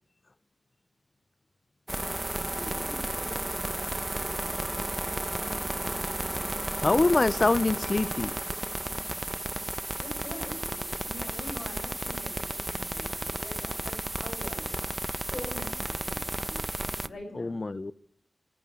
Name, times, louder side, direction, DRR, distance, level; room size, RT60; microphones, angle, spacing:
sound 1, 1.9-17.1, right 1 dB, 20° right, 0.7 m, -33 dB
voice 1, 2.6-4.5 10.0-14.8 15.3-16.6 17.0-17.6, left 1 dB, 60° left, 2 dB, 7.9 m, -44 dB
voice 2, 6.8-8.5 17.3-17.9, left 3 dB, 45° left, 16 dB, 0.5 m, -25 dB
18.0 x 8.1 x 8.5 m, 0.66 s
cardioid pair, 40°, 0 cm